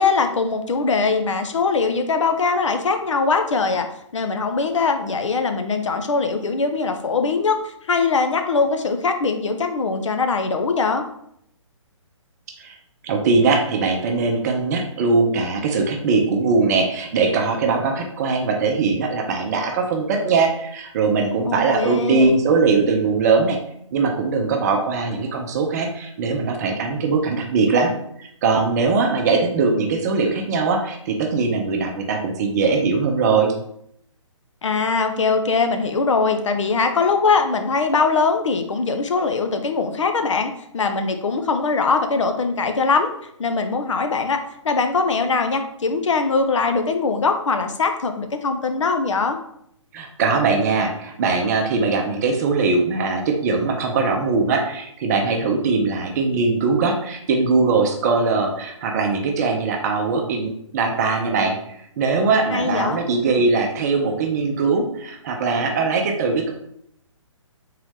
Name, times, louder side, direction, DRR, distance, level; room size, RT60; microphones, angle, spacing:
voice 1, 0.0-3.9 4.1-11.0 21.4-22.3 34.6-43.1 43.4-44.4 44.6-49.4 62.5-63.0, left 4 dB, 70° left, 7 dB, 0.6 m, -21 dB
voice 2, 13.0-23.6 23.9-27.9 28.2-33.5 49.9-66.5, right 4 dB, 30° right, 3 dB, 0.6 m, -21 dB
3.7 x 3.0 x 3.3 m, 0.71 s
figure-of-eight pair, 135°, 16 cm